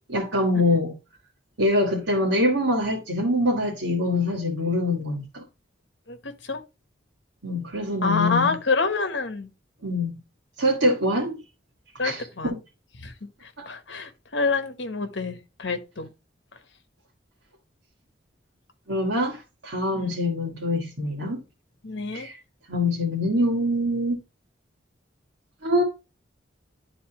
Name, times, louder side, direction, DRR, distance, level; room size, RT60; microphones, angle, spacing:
voice 1, 0.1-0.9 1.6-5.4 7.4-8.5 9.8-10.2 10.6-11.4 12.0-12.6 13.6-13.7 18.9-21.4 22.1-22.4 22.7-24.2 25.6-25.8, left 1 dB, 85° right, 1.9 m, -24 dB
voice 2, 6.1-6.6 8.0-9.5 12.0-12.6 13.0-13.1 13.4-16.1 19.9-20.1 21.8-22.3, left 4 dB, 75° left, 1.2 m, -27 dB
11.0 x 4.0 x 2.9 m
head